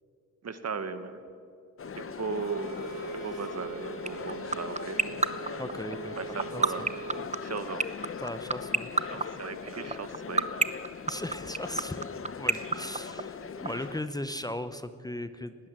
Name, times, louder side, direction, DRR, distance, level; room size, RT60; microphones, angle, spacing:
voice 1, 0.4-1.2 2.0-2.8 3.1-5.0 6.2-6.9 7.4-7.8 9.1-10.5 12.5-12.7 13.6-13.8, right 5 dB, 60° right, 10 dB, 1.5 m, -37 dB
sound 1, 1.8-14.0, left 6 dB, 45° left, 0.8 m, -40 dB
Bowed string instrument, 2.3-7.3, right 6 dB, 80° right, 0.9 m, -42 dB
sound 2, 4.1-13.7, right 3 dB, 25° right, 0.8 m, -24 dB
voice 2, 5.6-6.9 8.2-9.2 9.9-10.1 11.1-12.0 12.4-15.7, left 1 dB, 15° left, 11 dB, 0.7 m, -38 dB
19.5 x 18.5 x 7.5 m, 2.4 s
wide cardioid pair, 110°, 30 cm